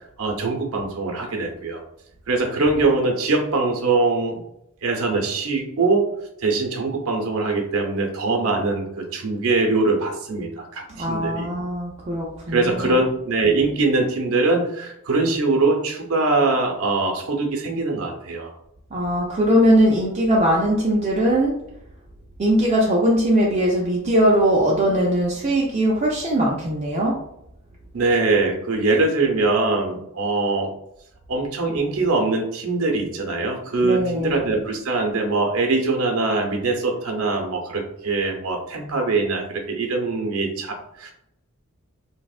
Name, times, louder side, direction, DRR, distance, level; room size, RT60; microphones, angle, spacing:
voice 1, 0.2-1.8 2.3-4.4 4.8-6.0 6.4-11.5 12.5-18.5 27.9-30.7 31.3-41.1, right 3 dB, 80° right, 2 dB, 0.6 m, -22 dB
voice 2, 11.0-13.0 18.9-21.5 22.4-27.2 33.8-34.4, equal, 30° right, -3 dB, 0.4 m, -20 dB
3.3 x 2.1 x 2.4 m, 0.78 s
head